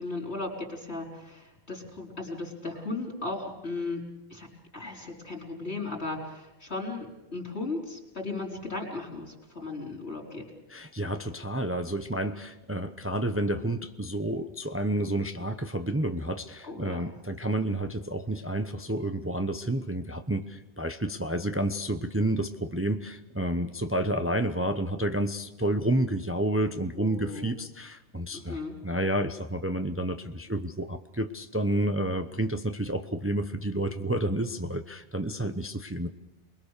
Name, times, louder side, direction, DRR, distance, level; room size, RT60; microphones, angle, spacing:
voice 1, 0.0-4.0 4.3-4.5 4.7-10.5 16.6-17.1 27.0-27.5 28.3-28.7, left 3 dB, 70° left, 2 dB, 4.8 m, -36 dB
voice 2, 10.7-36.1, right 1 dB, 15° right, 8 dB, 0.8 m, -30 dB
28.5 x 21.5 x 6.7 m, 0.98 s
omnidirectional pair, 1.1 m